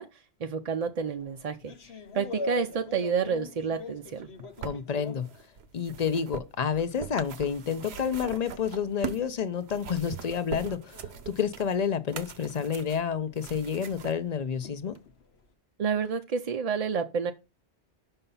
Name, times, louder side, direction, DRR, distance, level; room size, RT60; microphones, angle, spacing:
voice 1, 0.0-1.7 2.1-4.3 15.8-17.3, right 6 dB, 50° right, 0.5 m, -29 dB
sound 1, 1.0-6.2 6.5-15.5, left 2 dB, 70° left, 1.2 m, -44 dB
sound 2, 4.1-9.3 9.6-14.2 15.0-15.1, right 8 dB, 75° right, 0.9 m, -41 dB
voice 2, 4.6-5.3 5.7-11.0 11.3-15.0, left 7 dB, 45° left, 0.7 m, -29 dB
5.6 x 5.5 x 5.5 m
omnidirectional pair, 1.1 m